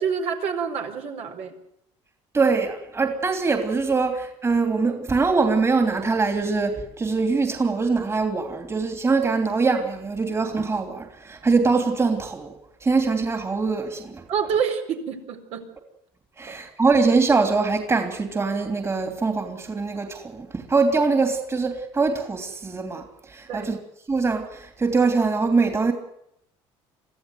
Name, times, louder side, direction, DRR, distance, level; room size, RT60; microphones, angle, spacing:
voice 1, 0.0-1.6 14.3-15.7 16.5-16.6 23.5-23.7, right 6 dB, 65° right, 4.4 m, -27 dB
voice 2, 2.3-12.5 12.8-14.2 16.4-23.8 24.1-25.9, right 4 dB, 25° right, 3.1 m, -23 dB
23.5 x 15.0 x 9.3 m
cardioid pair, 110°, 12 cm